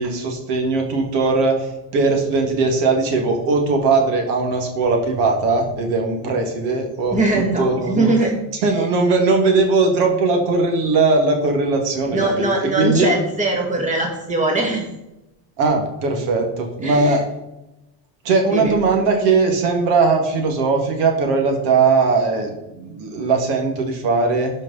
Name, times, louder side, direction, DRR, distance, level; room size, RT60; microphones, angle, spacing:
voice 1, 0.0-8.1 8.6-13.1 15.6-17.2 18.2-24.5, right 3 dB, 70° right, 2 dB, 2.3 m, -19 dB
voice 2, 7.1-8.4 8.8-8.9 12.1-14.9 16.8-17.2 18.5-18.7, right 2 dB, 15° right, 1 dB, 1.7 m, -21 dB
13.5 x 5.3 x 4.1 m, 0.94 s
cardioid pair, 150°, 42 cm